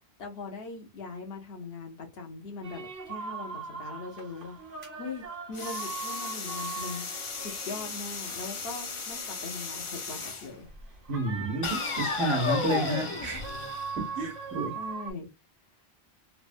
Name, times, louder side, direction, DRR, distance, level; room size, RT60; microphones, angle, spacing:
voice 1, 0.2-4.6 4.9-7.1 7.4-10.7 14.7-15.3, left 4 dB, 70° left, 1.0 m, -40 dB
sound 1, 2.6-15.1, right 5 dB, 60° right, 1.0 m, -41 dB
sound 2, 5.5-10.5 11.6-14.5, left 5 dB, 45° left, 0.4 m, -35 dB
voice 2, 11.1-13.4 14.0-14.7, right 2 dB, 85° right, 1.0 m, -30 dB
3.2 x 2.0 x 2.5 m
omnidirectional pair, 1.1 m